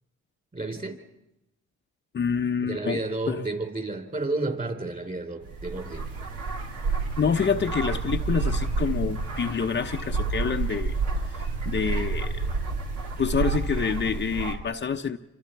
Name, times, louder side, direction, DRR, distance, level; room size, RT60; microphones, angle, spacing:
voice 1, 0.5-1.0 2.6-6.1, right 2 dB, 30° right, 5 dB, 3.8 m, -31 dB
voice 2, 2.1-3.0 3.3-3.5 7.2-10.9 11.3-12.4 13.2-15.2, left 6 dB, 35° left, 5 dB, 0.8 m, -27 dB
sound 1, 5.4-14.5, right 4 dB, 80° right, 3.3 m, -29 dB
28.0 x 24.5 x 4.6 m, 0.89 s
cardioid pair, 90°, 30 cm